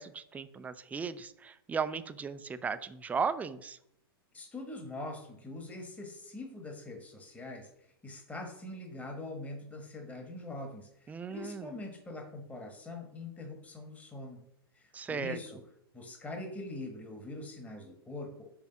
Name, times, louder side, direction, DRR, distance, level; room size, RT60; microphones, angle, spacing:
voice 1, 0.0-3.8 11.1-11.7 14.9-15.4, right 5 dB, 10° right, 12 dB, 0.4 m, -36 dB
voice 2, 4.3-14.4 14.7-15.6 15.9-18.6, left 2 dB, 10° left, 3 dB, 1.2 m, -43 dB
6.1 x 3.5 x 5.7 m, 0.73 s
hypercardioid pair, 105°, 13 cm